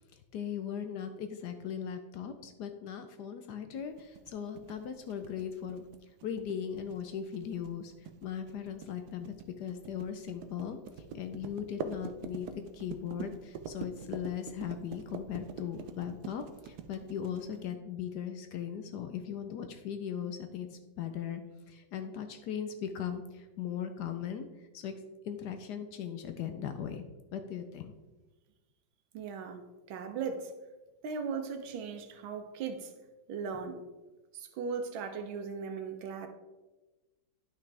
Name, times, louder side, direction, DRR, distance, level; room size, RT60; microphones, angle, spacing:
voice 1, 0.1-5.8 6.2-24.4 24.7-27.0 27.3-27.9, left 8 dB, 70° left, 8 dB, 1.0 m, -39 dB
sound 1, 4.0-17.7, right 6 dB, 70° right, 1.0 m, -44 dB
voice 2, 29.1-29.6 29.9-30.5 31.0-32.9 33.3-33.8 34.3-36.3, right 5 dB, 85° right, 7 dB, 1.6 m, -38 dB
10.0 x 6.0 x 3.3 m, 1.2 s
omnidirectional pair, 2.1 m